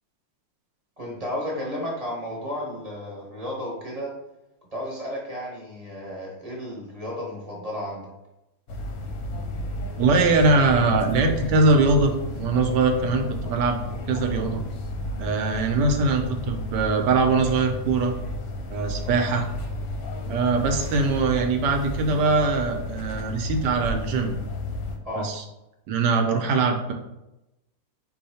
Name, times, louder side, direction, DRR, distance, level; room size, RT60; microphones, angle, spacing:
voice 1, 1.0-4.1 4.7-8.1 19.0-19.2 25.0-25.3, left 1 dB, 25° right, -4 dB, 0.9 m, -33 dB
sound 1, 8.7-25.0, left 1 dB, 65° left, 1.0 m, -32 dB
voice 2, 10.0-13.8 14.1-14.6 15.2-18.1 18.7-19.5 20.3-24.3 25.2-25.4 25.9-26.9, right 3 dB, 75° right, 5 dB, 1.2 m, -22 dB
4.3 x 2.8 x 4.2 m, 0.91 s
omnidirectional pair, 1.9 m